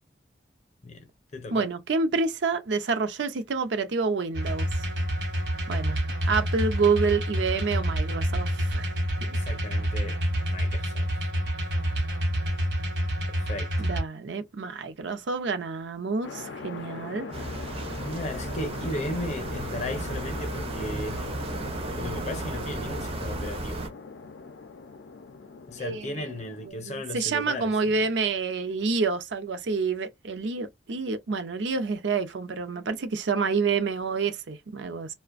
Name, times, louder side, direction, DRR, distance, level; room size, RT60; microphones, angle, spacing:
voice 1, 0.8-1.7 9.3-10.2 10.5-11.1 13.3-13.7 18.0-21.3 22.0-23.9 25.7-27.8, left 1 dB, 40° left, 0.6 m, -36 dB
voice 2, 1.5-4.8 5.7-6.0 6.2-8.9 9.2-9.4 13.8-17.3 25.8-26.3 26.7-35.1, right 4 dB, 85° right, 0.5 m, -28 dB
sound 1, 4.3-14.0, equal, 70° right, 0.9 m, -28 dB
sound 2, 16.2-26.7, left 4 dB, 85° left, 0.4 m, -40 dB
sound 3, 17.3-23.9, right 2 dB, 30° right, 0.5 m, -34 dB
2.4 x 2.1 x 2.4 m
head